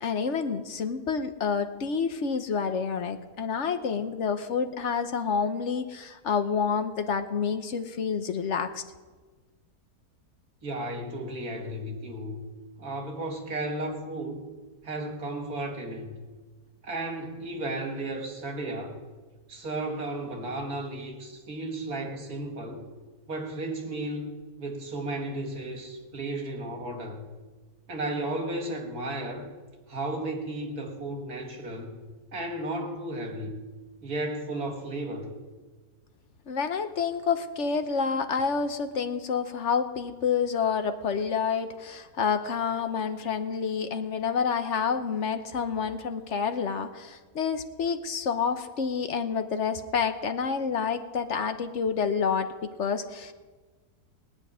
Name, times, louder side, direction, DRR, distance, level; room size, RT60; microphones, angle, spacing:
voice 1, 0.0-8.8 36.5-53.3, left 6 dB, 55° left, 8 dB, 1.2 m, -28 dB
voice 2, 10.6-12.4 12.8-14.4 14.8-16.1 16.8-19.0 19.5-22.9 23.3-27.3 27.9-29.5 29.9-32.0 32.3-33.6 34.0-35.4, right 1 dB, 70° right, 3 dB, 2.4 m, -34 dB
18.5 x 6.4 x 9.9 m, 1.3 s
omnidirectional pair, 1.6 m